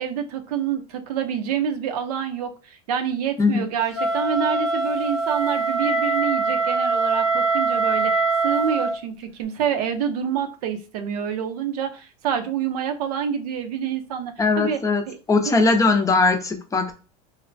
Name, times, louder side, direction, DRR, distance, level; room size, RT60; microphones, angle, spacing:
voice 1, 0.0-14.8 15.1-15.2 15.5-15.6, right 8 dB, 80° right, 0.6 m, -27 dB
Wind instrument woodwind instrument, 3.9-8.9, right 3 dB, ahead, 0.8 m, -23 dB
voice 2, 14.4-16.9, left 3 dB, 15° left, 0.5 m, -20 dB
3.2 x 2.1 x 2.6 m
supercardioid pair, 105°, 20 cm